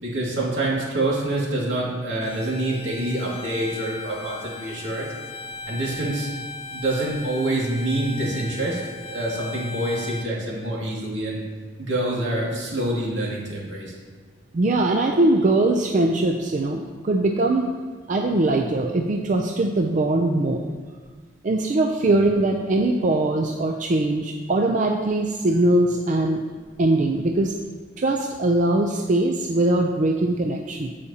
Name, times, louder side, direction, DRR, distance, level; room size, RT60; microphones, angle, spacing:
voice 1, 0.0-5.1 5.7-6.3 6.7-8.8 9.1-11.4 11.8-13.9 22.1-22.3, right 1 dB, 80° right, -4 dB, 2.2 m, -26 dB
Bowed string instrument, 2.2-10.3, left 2 dB, 30° left, 0.4 m, -38 dB
voice 2, 14.5-17.8 18.1-20.7 21.4-26.4 26.8-27.5 28.0-30.9, right 2 dB, 45° right, 2 dB, 0.4 m, -21 dB
15.0 x 5.0 x 2.8 m, 1.5 s
head